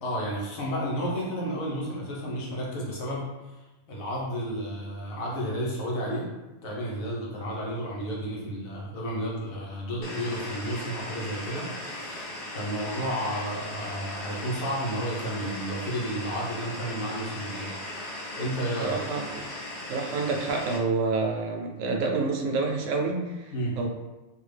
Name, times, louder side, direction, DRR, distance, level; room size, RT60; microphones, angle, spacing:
voice 1, 0.0-3.3 3.9-6.3 6.6-17.7 18.4-19.0 23.5-23.7, equal, 85° left, -4 dB, 1.3 m, -32 dB
sound 1, 10.0-20.8, left 1 dB, 45° left, 0.8 m, -38 dB
voice 2, 18.8-19.5 19.9-23.9, right 4 dB, 70° right, 1 dB, 0.9 m, -28 dB
3.4 x 2.3 x 3.2 m, 1.1 s
omnidirectional pair, 1.4 m